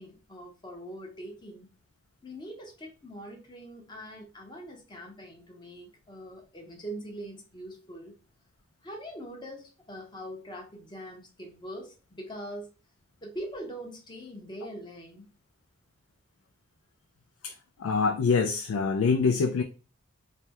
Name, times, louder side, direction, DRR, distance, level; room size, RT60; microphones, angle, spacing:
voice 1, 0.0-1.7 2.2-8.1 8.8-12.7 13.2-15.3, right 1 dB, 20° left, 0.7 m, -42 dB
voice 2, 17.8-19.6, left 5 dB, 90° left, 0.3 m, -25 dB
3.3 x 2.2 x 2.8 m
head